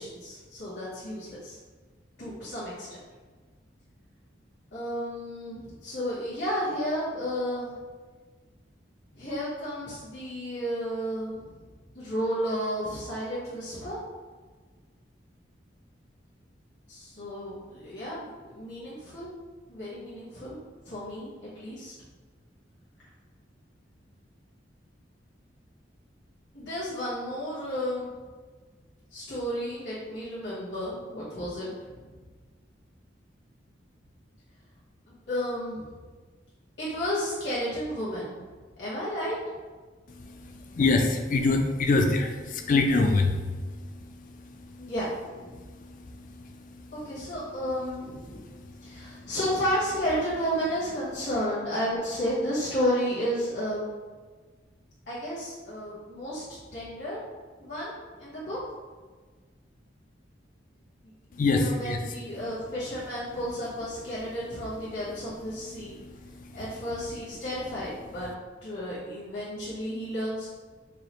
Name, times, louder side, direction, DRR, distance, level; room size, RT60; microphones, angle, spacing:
voice 1, 0.0-1.6 2.2-2.9 4.7-7.8 9.1-11.6 11.9-14.0 16.9-19.3 19.7-20.6 20.8-21.9 26.5-28.1 29.1-32.1 35.1-35.9 36.8-38.4 38.8-39.4 44.8-45.1 45.3-45.5 46.9-48.4 48.8-53.9 55.1-56.4 56.7-57.2 57.6-58.6 61.4-65.9 66.5-68.3 68.6-70.5, equal, 65° left, -10 dB, 1.2 m, -32 dB
voice 2, 40.6-43.4 46.4-46.5 48.3-48.4 48.8-49.0 61.4-62.0 66.0-66.3, left 3 dB, 45° left, 5 dB, 0.4 m, -24 dB
4.7 x 2.4 x 3.0 m, 1.4 s
head